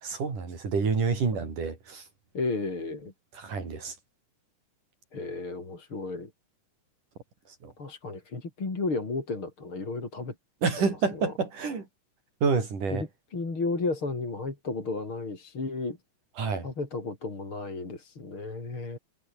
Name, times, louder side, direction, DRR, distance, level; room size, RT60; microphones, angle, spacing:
voice 1, 0.0-2.0 3.4-4.0 7.6-7.7 10.6-11.9 12.4-13.1 16.4-16.7, right 5 dB, 80° right, 6.9 m, -28 dB
voice 2, 2.3-3.1 5.1-6.3 7.8-10.3 10.8-11.3 12.9-16.0 16.6-19.0, left 3 dB, 40° left, 5.5 m, -33 dB
omnidirectional pair, 3.6 m